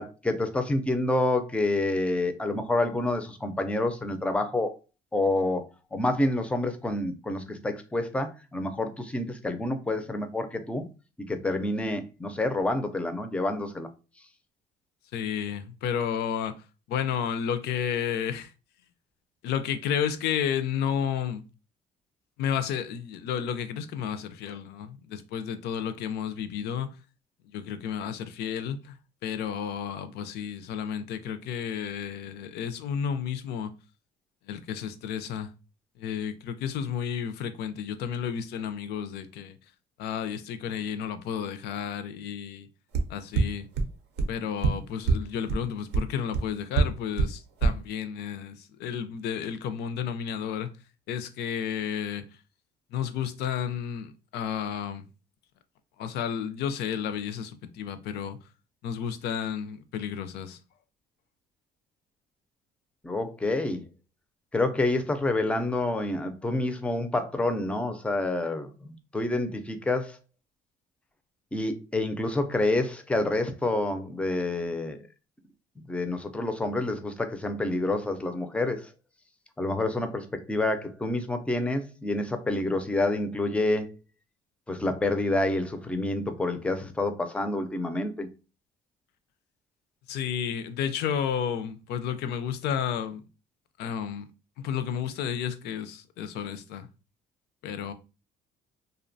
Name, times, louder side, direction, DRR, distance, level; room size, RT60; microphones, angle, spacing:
voice 1, 0.0-4.7 5.1-5.6 5.9-10.9 11.3-13.9 63.0-63.8 64.5-70.2 71.5-75.0 75.9-78.9 79.6-84.0 84.7-88.3, left 2 dB, 5° left, 0.3 m, -28 dB
voice 2, 15.1-18.5 19.4-21.4 22.4-26.9 27.5-33.7 34.5-35.5 36.0-39.6 40.0-42.7 43.1-43.7 44.3-50.7 51.1-52.2 52.9-55.1 56.0-58.4 58.8-60.6 90.1-93.2 93.8-94.3 94.6-96.9 97.6-97.9, left 8 dB, 75° left, 0.4 m, -32 dB
sound 1, 42.9-43.0 43.4-43.5 43.8-43.9 44.2-44.3 44.6-44.7 45.1-45.2 45.5-45.6 45.9-46.0 46.3-46.4 46.8-46.9 47.2-47.3 47.6-47.7, right 4 dB, 85° right, 0.5 m, -21 dB
2.5 x 2.1 x 2.5 m
cardioid pair, 110°, 17 cm